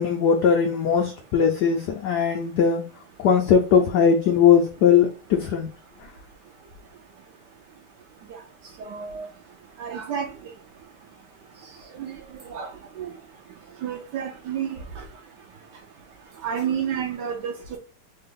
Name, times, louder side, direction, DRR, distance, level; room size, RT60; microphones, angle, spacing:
voice 1, 0.0-2.8 3.2-5.7, left 7 dB, 80° left, 0.9 m, -19 dB
voice 2, 8.9-9.3 9.8-10.3 12.0-12.1 12.5-12.7 13.0-13.1 13.8-14.8 16.4-17.5, right 8 dB, 75° right, 1.0 m, -29 dB
3.3 x 2.4 x 3.5 m
omnidirectional pair, 2.3 m